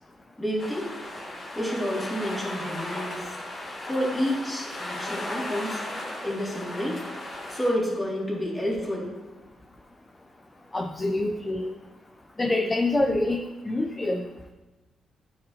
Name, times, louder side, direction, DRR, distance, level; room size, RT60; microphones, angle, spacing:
voice 1, 0.4-0.9 1.5-3.3 3.8-5.8 6.2-7.0 7.5-9.1, equal, 5° left, -4 dB, 2.3 m, -29 dB
sound 1, 0.6-7.7, left 1 dB, 40° left, 1.9 m, -36 dB
voice 2, 10.7-11.7 12.4-14.2, left 2 dB, 20° left, 3 dB, 0.5 m, -26 dB
9.1 x 4.9 x 2.8 m, 1.1 s
cardioid pair, 80°, 0 cm